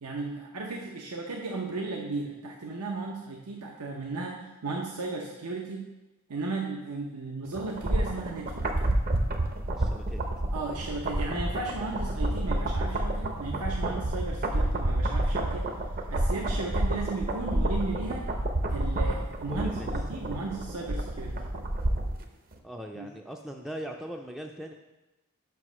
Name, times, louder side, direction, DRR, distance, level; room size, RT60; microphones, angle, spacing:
voice 1, 0.0-5.9 6.3-8.7 10.5-15.7 16.1-18.3 18.7-21.4 22.9-23.1, right 3 dB, 85° right, 0 dB, 0.7 m, -35 dB
sound 1, 7.5-22.2 22.5-22.6, right 1 dB, 40° right, 0.6 m, -29 dB
voice 2, 9.7-10.2 19.5-19.9 22.6-24.7, equal, ahead, 2 dB, 0.3 m, -40 dB
5.5 x 4.7 x 6.0 m, 1.1 s
head